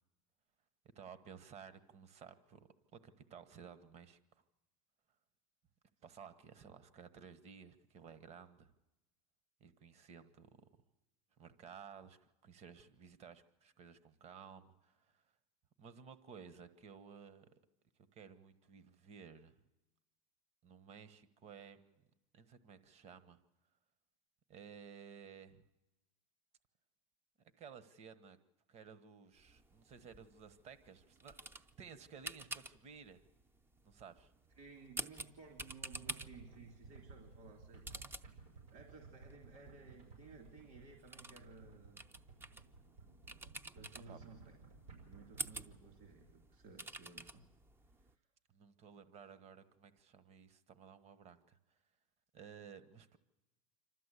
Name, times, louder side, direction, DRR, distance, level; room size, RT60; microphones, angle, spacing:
voice 1, 0.9-4.4 6.0-8.7 9.6-10.7 11.4-15.2 15.8-17.5 18.1-19.5 20.6-22.0 22.3-23.4 24.5-25.6 27.6-28.4 28.7-33.2 33.8-34.3 44.1-44.2 48.5-51.6 52.3-53.2, right 6 dB, 40° right, 13 dB, 1.3 m, -56 dB
sound 1, 29.4-48.1, right 2 dB, 15° right, 0.6 m, -51 dB
voice 2, 34.6-38.1 38.7-42.0 43.7-44.5 45.0-47.5 47.9-48.2, right 4 dB, 55° right, 2 dB, 3.1 m, -57 dB
sound 2, 35.9-46.0, right 4 dB, 85° right, 6.7 m, -58 dB
27.0 x 13.0 x 8.3 m, 1.0 s
supercardioid pair, 115°, 17 cm